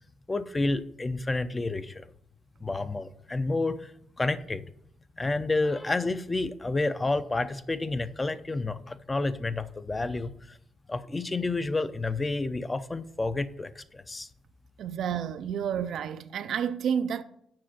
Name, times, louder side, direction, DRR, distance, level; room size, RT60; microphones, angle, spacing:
voice 1, 0.3-2.0 2.6-3.9 4.2-4.6 5.2-10.3 10.9-14.3, left 2 dB, 20° left, 0.6 m, -30 dB
voice 2, 14.8-17.2, right 8 dB, 70° right, 0.5 m, -30 dB
7.6 x 6.0 x 5.9 m
cardioid pair, 90°, 0 cm